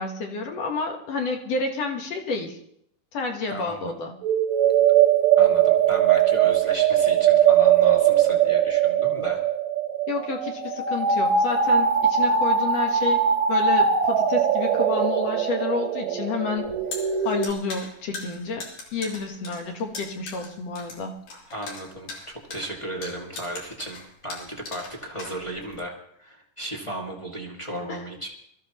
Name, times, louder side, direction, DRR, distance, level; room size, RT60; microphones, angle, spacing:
voice 1, 0.0-2.6 3.1-4.1 10.1-13.2 13.5-16.7 17.2-18.7 18.9-21.1 27.9-28.0, left 4 dB, 60° left, 2 dB, 2.1 m, -30 dB
voice 2, 3.5-3.9 5.4-9.4 21.5-28.3, right 1 dB, 15° left, -2 dB, 1.0 m, -35 dB
sound 1, 4.2-17.5, right 8 dB, 80° right, 3.0 m, -21 dB
sound 2, 16.6-25.8, left 3 dB, 80° left, 4.7 m, -39 dB
23.0 x 14.0 x 3.0 m, 0.71 s
omnidirectional pair, 3.9 m